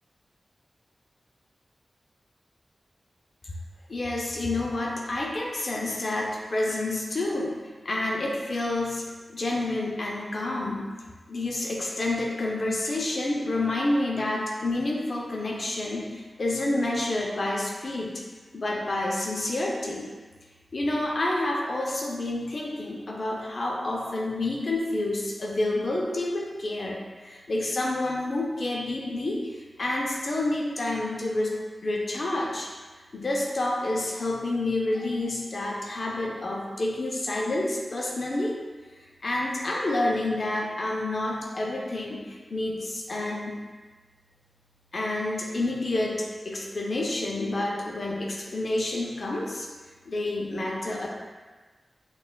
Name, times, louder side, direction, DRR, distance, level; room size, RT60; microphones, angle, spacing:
voice 1, 3.9-7.5 7.8-9.0 9.3-10.9 11.3-18.2 18.5-20.1 20.7-31.6 31.8-32.7 33.1-38.5 39.0-43.6 44.9-49.7 50.1-51.1, left 2 dB, 60° left, -2 dB, 0.5 m, -29 dB
4.9 x 2.3 x 2.3 m, 1.4 s
cardioid pair, 55°, 0 cm